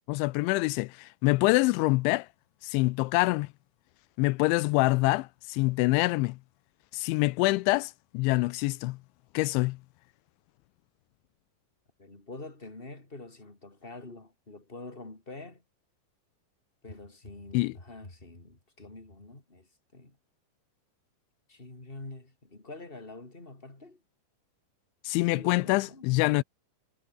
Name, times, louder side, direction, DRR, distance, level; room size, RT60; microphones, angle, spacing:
voice 1, 0.1-2.3 2.6-3.5 4.2-6.4 6.9-9.0 9.3-9.8 17.5-17.8 25.0-26.4, left 22 dB, 85° left, 3.0 m, -25 dB
voice 2, 12.0-15.6 16.8-20.1 21.5-24.0 25.2-26.1, left 2 dB, 10° left, 4.7 m, -46 dB
omnidirectional pair, 5.3 m